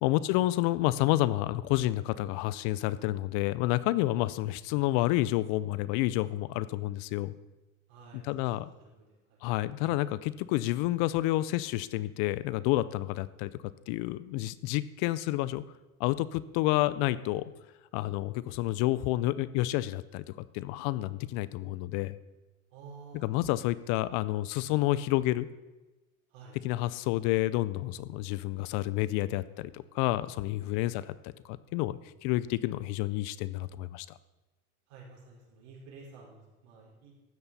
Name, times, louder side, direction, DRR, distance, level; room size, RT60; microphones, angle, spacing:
voice 1, 0.0-7.3 8.2-8.7 9.4-15.6 16.0-17.5 17.9-20.2 20.5-22.2 23.1-25.5 26.6-34.2, left 16 dB, 60° left, 17 dB, 0.6 m, -29 dB
voice 2, 7.9-8.5 8.8-9.4 22.7-23.4 26.3-26.6 30.9-31.1 34.9-37.1, right 4 dB, 65° right, -3 dB, 4.6 m, -51 dB
13.0 x 8.7 x 4.2 m, 1.1 s
supercardioid pair, 110°, 43 cm